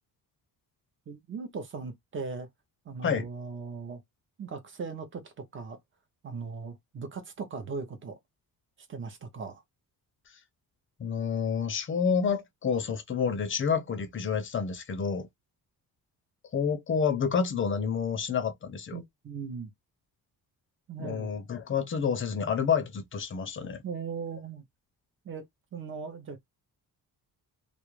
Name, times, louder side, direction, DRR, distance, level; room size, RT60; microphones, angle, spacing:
voice 1, 1.1-2.5 2.8-4.0 4.4-5.8 6.2-8.2 8.8-9.6 18.9-19.7 20.9-21.3 23.8-24.6 25.2-25.4 25.7-26.4, right 5 dB, 30° right, 0.6 m, -38 dB
voice 2, 11.0-15.3 16.5-19.0 21.0-23.8, left 6 dB, 35° left, 0.5 m, -29 dB
2.4 x 2.0 x 3.0 m
cardioid pair, 135°, 39 cm